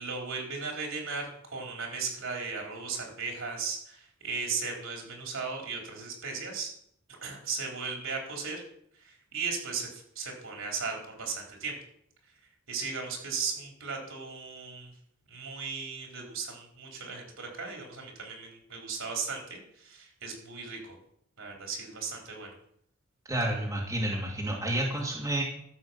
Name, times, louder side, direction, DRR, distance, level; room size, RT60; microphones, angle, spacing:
voice 1, 0.0-6.7 7.2-8.6 9.0-11.8 12.7-14.9 15.3-20.9 21.4-22.5, right 5 dB, 70° right, 1 dB, 3.9 m, -36 dB
voice 2, 23.3-25.4, right 1 dB, 15° right, -2 dB, 2.4 m, -30 dB
13.5 x 7.8 x 5.8 m, 0.69 s
head